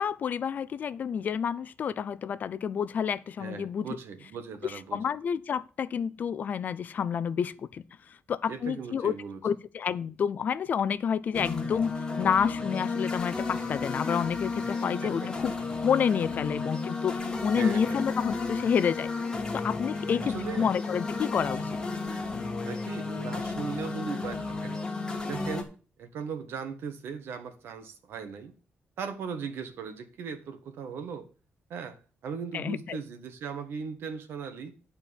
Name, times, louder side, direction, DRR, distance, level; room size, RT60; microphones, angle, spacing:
voice 1, 0.0-3.9 4.6-7.8 8.1-9.1 9.4-15.5 15.8-19.1 19.5-21.7 32.5-33.0, left 7 dB, 50° left, 0.5 m, -29 dB
voice 2, 3.4-5.0 8.5-9.4 15.0-15.3 17.5-18.0 20.2-20.7 22.6-24.9 25.2-25.7 26.0-28.5 29.0-31.3 31.7-32.0 32.2-34.7, right 6 dB, 85° right, 1.5 m, -38 dB
sound 1, 11.3-25.6, left 3 dB, 20° left, 1.4 m, -33 dB
10.5 x 4.4 x 7.1 m
wide cardioid pair, 170°, 4 cm